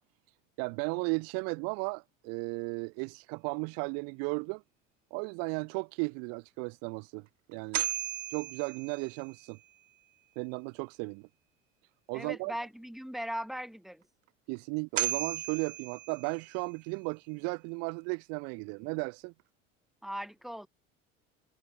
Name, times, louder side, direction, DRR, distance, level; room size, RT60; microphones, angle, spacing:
voice 1, 0.6-4.6 5.1-7.9 8.3-9.6 10.4-11.3 12.1-12.5 14.5-19.3, right 36 dB, 40° right, 0.4 m, -35 dB
sound 1, 7.5-9.6 14.6-14.7 15.0-16.9, right 14 dB, 70° right, 0.8 m, -36 dB
voice 2, 12.1-14.0 20.0-20.7, equal, ahead, 1.9 m, -39 dB
figure-of-eight pair, 70°, 39 cm